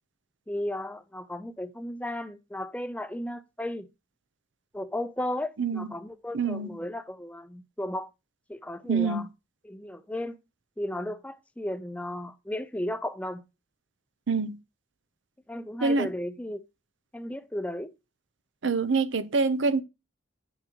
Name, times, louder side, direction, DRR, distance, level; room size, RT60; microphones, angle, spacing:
voice 1, 0.5-3.9 4.7-8.1 8.5-9.3 9.6-10.4 10.8-13.4 15.5-16.6 17.1-17.9, left 1 dB, 5° left, 0.5 m, -34 dB
voice 2, 6.3-6.7 8.9-9.2 14.3-14.6 15.8-16.1 18.6-19.8, right 4 dB, 85° right, 0.7 m, -25 dB
9.0 x 6.0 x 3.0 m
head